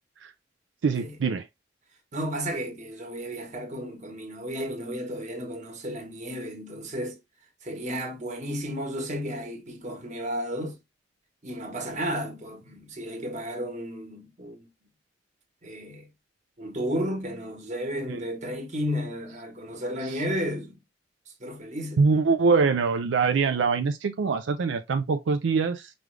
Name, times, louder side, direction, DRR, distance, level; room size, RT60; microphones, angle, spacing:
voice 1, 0.8-1.5 18.1-18.2 20.0-20.2 22.0-25.9, right 4 dB, 85° right, 0.4 m, -24 dB
voice 2, 2.1-7.2 7.6-10.8 11.4-14.7 15.6-16.1 16.6-20.8 21.4-22.0, equal, 40° right, 1.2 m, -33 dB
5.1 x 2.4 x 3.2 m
head